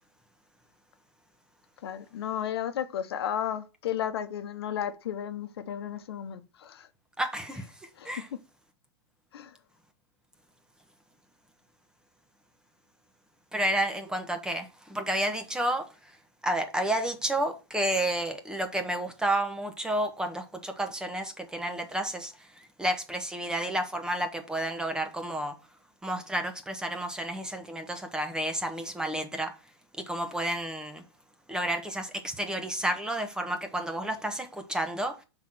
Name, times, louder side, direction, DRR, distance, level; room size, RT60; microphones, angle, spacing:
voice 1, 1.8-6.9 8.0-8.1 9.3-9.5, left 10 dB, 85° left, 0.9 m, -33 dB
voice 2, 7.2-8.3 13.5-16.1 16.4-25.6 26.0-29.5 30.0-31.0 31.5-35.2, right 1 dB, 5° right, 1.1 m, -31 dB
6.0 x 3.9 x 5.9 m
supercardioid pair, 135°, 13 cm